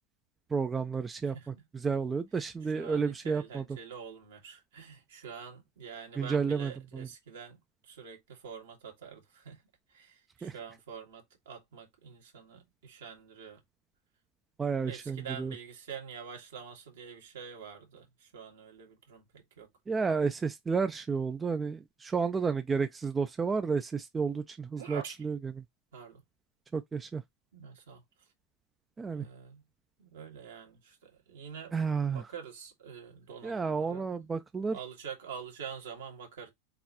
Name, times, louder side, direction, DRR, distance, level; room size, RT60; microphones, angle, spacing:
voice 1, 0.5-3.6 6.2-7.1 10.4-10.5 14.6-15.5 19.9-25.6 26.7-27.2 29.0-29.3 31.7-32.2 33.4-34.8, right 5 dB, 20° right, 0.5 m, -31 dB
voice 2, 1.3-1.6 2.7-9.6 9.9-13.6 14.8-19.7 24.8-25.2 25.9-26.2 27.5-28.0 29.1-29.7 30.0-31.7 32.1-34.3 34.7-36.5, right 7 dB, 70° right, 1.7 m, -46 dB
4.1 x 4.0 x 2.8 m
figure-of-eight pair, 85°, 0 cm